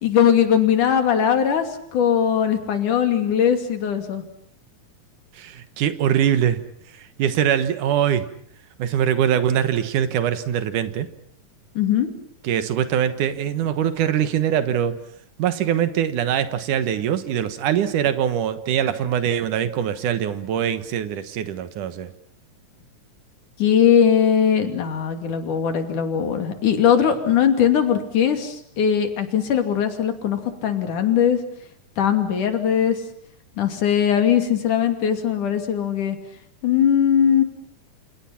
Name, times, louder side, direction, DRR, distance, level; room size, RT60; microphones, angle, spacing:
voice 1, 0.0-4.2 11.8-12.1 23.6-31.4 32.0-33.0 33.6-36.2 36.6-37.4, left 8 dB, 90° left, 7 dB, 4.2 m, -20 dB
voice 2, 5.3-6.6 7.0-8.3 8.8-11.1 12.4-15.0 15.4-22.1, right 9 dB, 85° right, 11 dB, 2.9 m, -22 dB
28.5 x 28.5 x 5.9 m, 0.64 s
omnidirectional pair, 3.5 m